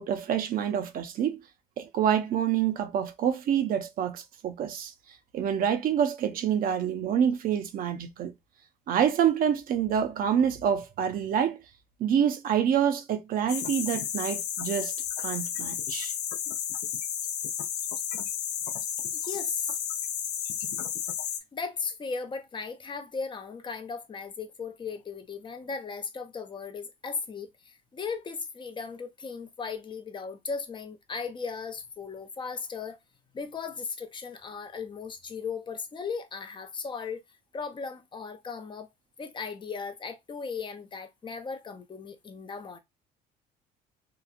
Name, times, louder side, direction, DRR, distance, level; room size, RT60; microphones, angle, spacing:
voice 1, 0.0-1.4 1.8-4.9 5.3-8.3 8.9-11.6 12.0-14.9 15.2-16.1, right 8 dB, 60° right, 0.5 m, -27 dB
sound 1, 13.5-21.4, left 9 dB, 85° left, 0.5 m, -32 dB
voice 2, 19.1-19.7 21.5-33.0 33.3-37.2 37.5-38.9 39.2-42.8, left 5 dB, 30° left, 0.5 m, -37 dB
2.9 x 2.3 x 2.4 m
cardioid pair, 110°, 17 cm